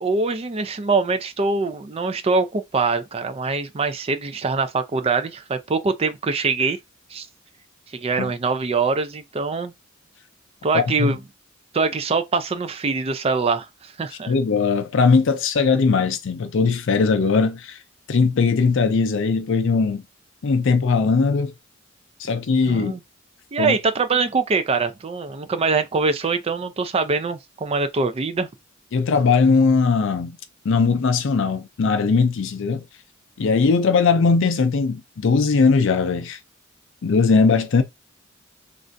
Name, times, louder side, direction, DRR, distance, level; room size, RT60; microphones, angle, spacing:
voice 1, 0.0-6.8 7.1-7.3 7.9-9.7 10.6-11.2 11.7-14.3 22.7-23.0 23.5-28.5, right 4 dB, 30° right, 0.4 m, -23 dB
voice 2, 10.7-11.1 14.3-17.8 18.1-20.0 20.4-21.5 22.2-23.0 23.6-23.8 28.9-30.4 30.6-32.8 33.4-36.4 37.0-37.8, left 4 dB, 65° left, 0.4 m, -19 dB
3.3 x 2.5 x 2.5 m
head